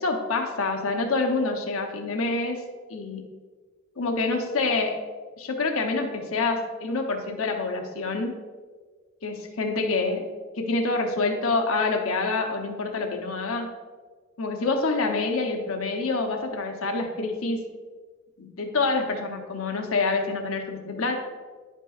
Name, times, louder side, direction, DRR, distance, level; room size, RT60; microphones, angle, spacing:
voice 1, 0.0-2.6 2.9-3.2 4.0-5.0 5.4-8.3 9.2-10.3 10.5-13.7 14.4-17.6 18.4-21.2, left 3 dB, 80° left, 3 dB, 0.8 m, -27 dB
10.5 x 5.5 x 2.4 m, 1.4 s
head